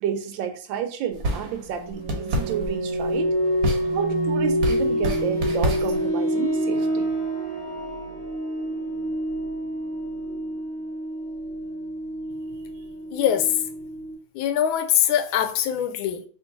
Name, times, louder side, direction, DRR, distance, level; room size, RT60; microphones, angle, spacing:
voice 1, 0.0-3.3 3.9-7.1, right 8 dB, 75° right, 1.3 m, -30 dB
sound 1, 1.1-6.1, right 1 dB, 55° right, 1.1 m, -29 dB
sound 2, 1.6-14.1, right 1 dB, 25° left, 1.7 m, -27 dB
voice 2, 13.1-13.5 14.3-16.2, left 10 dB, 90° left, 1.4 m, -22 dB
3.8 x 2.8 x 3.9 m
omnidirectional pair, 2.1 m